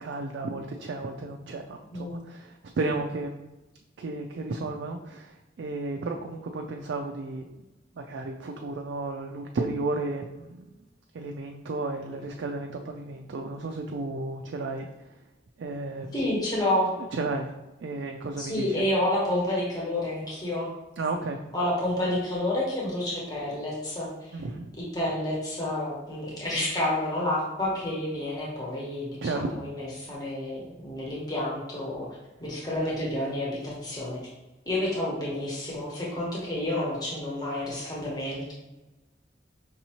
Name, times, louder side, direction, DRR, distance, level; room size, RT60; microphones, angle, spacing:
voice 1, 0.0-3.4 4.0-7.5 7.9-10.7 11.1-15.2 15.6-16.4 17.0-17.5 17.8-18.9 21.0-21.4 24.3-24.7 29.2-29.6, right 3 dB, 80° right, 3 dB, 0.3 m, -33 dB
voice 2, 16.1-16.9 18.4-20.7 21.5-24.1 24.9-32.1 32.4-34.2 34.7-38.5, left 1 dB, 20° left, -5 dB, 1.0 m, -29 dB
5.3 x 2.7 x 2.9 m, 1.0 s
head